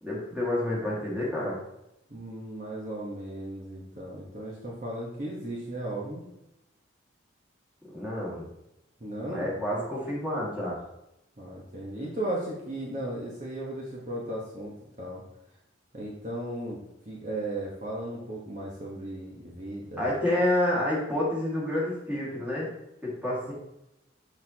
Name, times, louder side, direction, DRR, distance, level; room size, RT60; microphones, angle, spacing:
voice 1, 0.0-1.6 7.9-8.5 9.3-10.8 20.0-22.7 23.0-23.5, left 1 dB, 5° right, -6 dB, 1.9 m, -29 dB
voice 2, 2.1-6.3 9.0-9.5 11.4-15.2 15.9-20.1, right 1 dB, 40° right, -4 dB, 1.1 m, -36 dB
6.5 x 6.3 x 2.8 m, 0.87 s
head